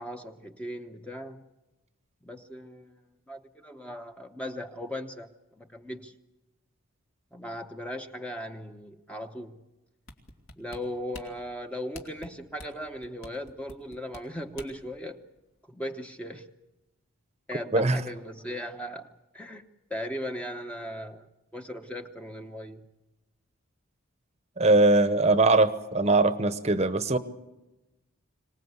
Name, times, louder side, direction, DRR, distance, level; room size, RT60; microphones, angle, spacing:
voice 1, 0.0-1.4 2.2-3.0 3.3-5.3 5.6-6.1 7.3-9.6 10.6-15.2 15.7-16.5 17.5-19.1 19.3-19.6 19.9-21.3 21.5-22.8, equal, 5° left, 5 dB, 0.9 m, -38 dB
sound 1, 10.1-14.9 15.4-15.5, left 2 dB, 65° left, 2.7 m, -46 dB
voice 2, 24.6-27.2, right 2 dB, 30° right, 11 dB, 0.9 m, -21 dB
25.0 x 19.0 x 8.1 m, 1.0 s
head